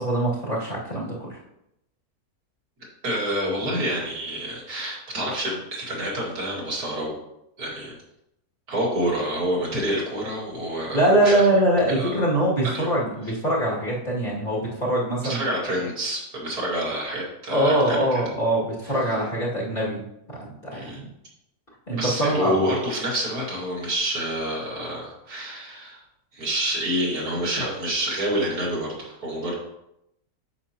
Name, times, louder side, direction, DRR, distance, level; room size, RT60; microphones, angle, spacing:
voice 1, 0.0-1.4 3.6-3.8 10.9-15.4 17.5-20.0 20.4-21.0 21.9-22.6, right 1 dB, 30° left, -6 dB, 2.5 m, -23 dB
voice 2, 3.0-7.2 7.6-8.0 8.7-11.4 11.9-12.4 12.7-12.9 15.2-18.2 18.8-18.9 20.7-21.0 21.9-26.0 26.3-29.5, equal, 75° right, -4 dB, 2.6 m, -28 dB
8.7 x 6.5 x 2.9 m, 0.82 s
omnidirectional pair, 1.6 m